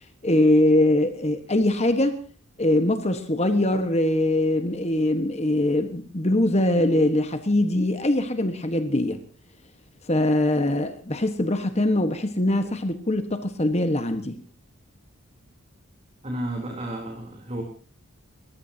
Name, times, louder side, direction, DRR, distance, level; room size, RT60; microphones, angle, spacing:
voice 1, 0.2-2.2 2.6-9.2 10.1-14.4, left 1 dB, 30° left, 8 dB, 1.3 m, -22 dB
voice 2, 16.2-17.6, right 1 dB, 30° right, 1 dB, 3.6 m, -32 dB
30.0 x 14.5 x 2.8 m, 0.41 s
head